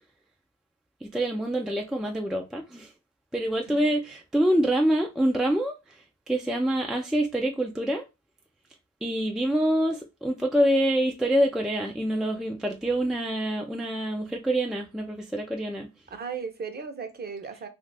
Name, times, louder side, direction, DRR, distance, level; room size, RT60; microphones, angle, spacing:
voice 1, 1.0-2.9 3.3-8.1 9.0-15.9, right 1 dB, ahead, 0.4 m, -26 dB
voice 2, 16.1-17.7, right 5 dB, 35° right, 0.7 m, -36 dB
2.5 x 2.5 x 3.2 m
cardioid pair, 90°, 30 cm